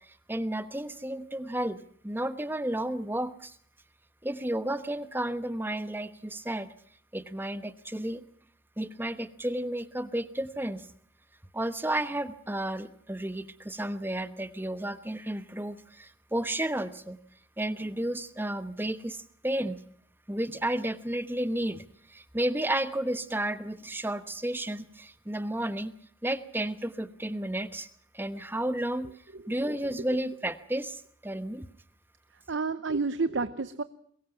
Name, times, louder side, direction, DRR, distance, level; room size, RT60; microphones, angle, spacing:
voice 1, 0.3-1.8 2.0-3.5 4.2-6.7 7.1-8.2 8.8-10.8 11.5-17.2 17.6-19.8 20.3-21.8 22.1-25.9 26.2-27.9 28.1-29.1 29.5-31.7, right 1 dB, 10° right, 12 dB, 1.0 m, -32 dB
voice 2, 32.5-33.8, right 4 dB, 65° right, 13 dB, 0.8 m, -29 dB
22.5 x 21.5 x 5.8 m, 0.65 s
head